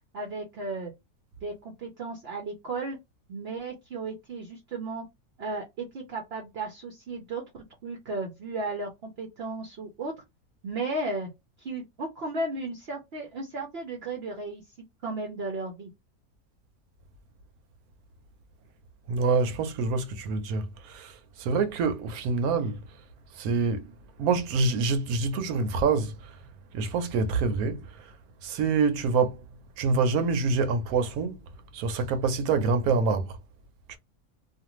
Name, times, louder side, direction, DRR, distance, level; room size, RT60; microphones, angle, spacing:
voice 1, 0.1-0.9 1.4-3.0 3.3-5.0 5.4-10.1 10.6-11.3 11.6-14.6 15.0-15.9, right 2 dB, 55° right, 0.8 m, -34 dB
voice 2, 19.1-22.8 23.4-23.9 24.2-26.3 26.7-28.1 28.4-29.4 29.8-31.4 31.7-33.4 33.9-34.0, right 4 dB, 80° right, 1.1 m, -26 dB
2.5 x 2.4 x 3.0 m
omnidirectional pair, 1.5 m